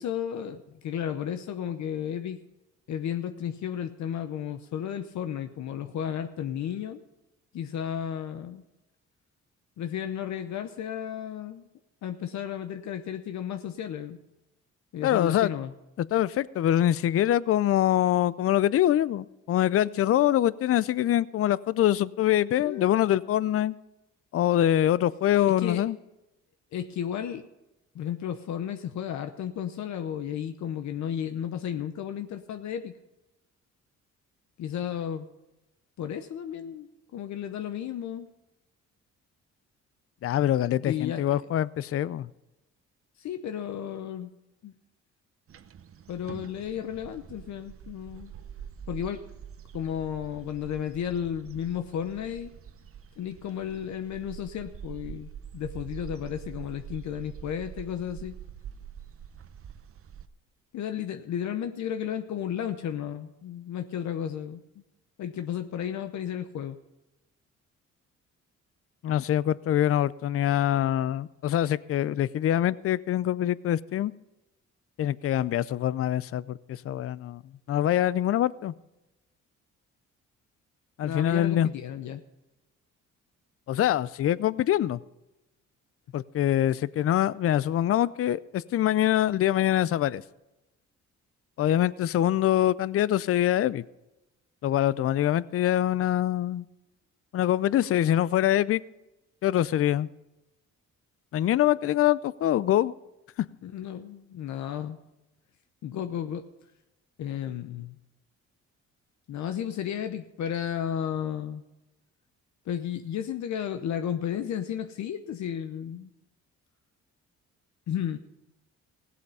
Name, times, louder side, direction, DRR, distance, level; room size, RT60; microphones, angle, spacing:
voice 1, 0.0-2.4 2.9-7.0 7.5-8.6 9.8-11.7 12.0-14.2 14.9-15.7 22.6-23.0 25.4-25.8 26.7-27.5 27.9-32.9 34.6-35.3 36.0-38.3 40.8-41.2 43.2-44.3 44.6-44.7 46.1-48.3 48.9-49.2 49.7-52.5 53.2-58.3 60.7-64.6 65.2-66.8 81.0-82.2 103.6-105.0 105.8-106.5 107.2-108.0 109.3-111.6 112.7-116.1 117.9-118.2, left 9 dB, 70° left, 8 dB, 0.8 m, -33 dB
voice 2, 15.0-15.5 16.0-23.7 24.3-26.0 40.2-42.3 69.0-74.1 75.0-77.4 77.7-78.7 81.0-81.7 83.7-85.0 86.1-90.2 91.6-93.8 94.6-96.7 97.3-98.8 99.4-100.1 101.3-102.9, left 12 dB, 50° left, 19 dB, 0.5 m, -24 dB
sound 1, 45.5-60.3, right 8 dB, 45° right, 0.8 m, -45 dB
16.5 x 8.3 x 5.4 m, 0.96 s
cardioid pair, 90°, 30 cm